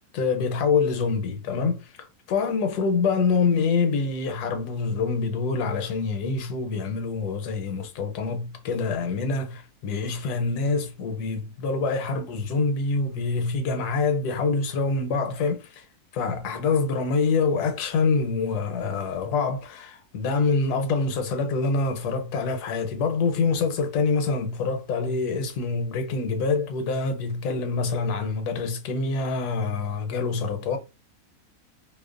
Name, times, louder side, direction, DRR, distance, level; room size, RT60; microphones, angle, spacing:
voice 1, 0.0-15.8 16.1-30.8, left 4 dB, 80° left, 1.1 m, -26 dB
2.7 x 2.0 x 2.4 m
omnidirectional pair, 1.7 m